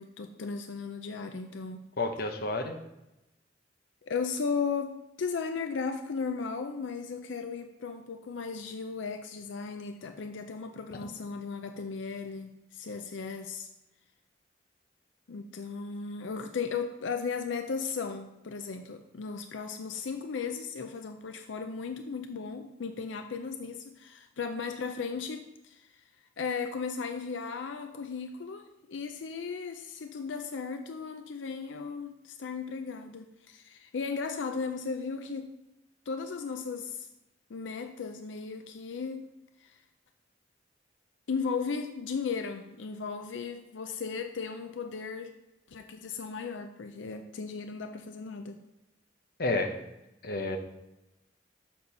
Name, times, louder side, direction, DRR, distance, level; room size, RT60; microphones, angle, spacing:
voice 1, 0.0-1.8 4.0-13.7 15.3-26.0 26.4-35.5 36.1-37.1 37.5-39.3 39.6-39.8 41.3-45.3 45.7-48.6, left 5 dB, 90° left, 6 dB, 0.5 m, -36 dB
voice 2, 2.0-2.8 49.4-49.7 50.2-50.6, left 2 dB, 55° left, 4 dB, 0.9 m, -30 dB
6.7 x 4.3 x 5.4 m, 0.93 s
head